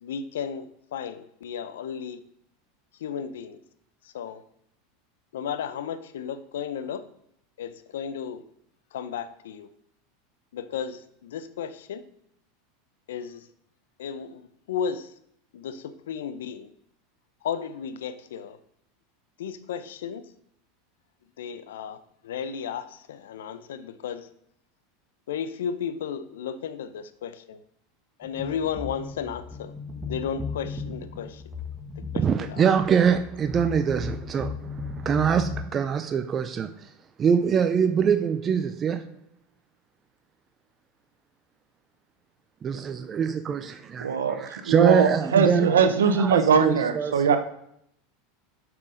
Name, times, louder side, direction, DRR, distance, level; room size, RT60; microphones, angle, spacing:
voice 1, 0.0-2.2 3.0-3.6 4.0-4.4 5.3-7.0 7.6-8.4 8.9-9.7 10.5-12.0 13.1-13.5 14.0-15.1 15.5-16.7 17.4-18.6 19.4-20.2 21.4-24.3 25.3-27.6 28.2-29.7 30.0-31.4 32.1-32.7, left 7 dB, 80° left, 13 dB, 0.6 m, -34 dB
sound 1, 28.2-35.6, left 4 dB, 10° right, 1.5 m, -36 dB
voice 2, 32.2-36.9 37.2-39.2 42.6-45.8 46.2-47.4, right 7 dB, 30° right, 9 dB, 0.4 m, -24 dB
voice 3, 44.0-47.4, right 6 dB, 90° right, 8 dB, 0.9 m, -21 dB
7.5 x 6.1 x 3.9 m, 0.73 s
hypercardioid pair, 100°, 0 cm